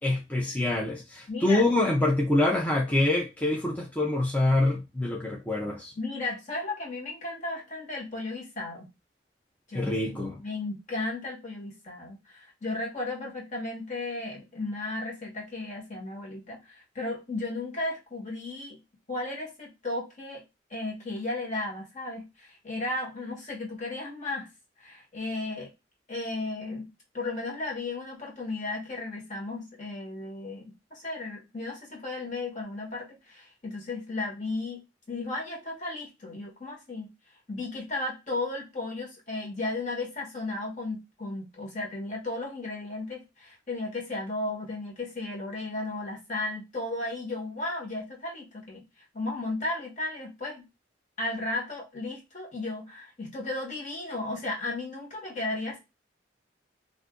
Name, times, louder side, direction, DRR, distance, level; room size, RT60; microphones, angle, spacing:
voice 1, 0.0-5.9 9.7-10.4, left 2 dB, 10° left, 0.5 m, -25 dB
voice 2, 1.3-1.6 6.0-8.9 9.7-10.0 10.4-18.8 19.1-20.4 20.7-24.5 24.8-25.7 26.1-34.8 35.1-37.1 37.5-48.8 49.1-50.6 51.2-55.8, left 2 dB, 45° left, 1.3 m, -34 dB
2.5 x 2.5 x 3.6 m
head